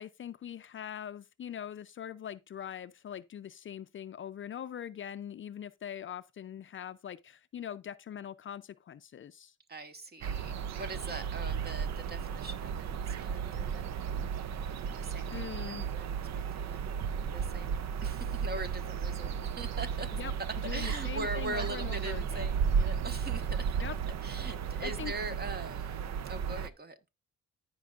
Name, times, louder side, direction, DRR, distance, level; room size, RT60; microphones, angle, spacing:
voice 1, 0.0-9.5 15.3-15.9 20.2-20.3 20.6-22.5 23.8-23.9 24.8-25.1, left 9 dB, 40° left, 0.5 m, -42 dB
voice 2, 9.7-14.0 14.8-16.2 16.5-16.9 17.3-20.1 20.7-23.8 24.2-26.0 26.3-27.0, right 2 dB, 30° right, 1.4 m, -42 dB
sound 1, 10.2-26.7, right 7 dB, 60° right, 0.7 m, -34 dB
14.5 x 5.3 x 2.4 m
cardioid pair, 90°, 30 cm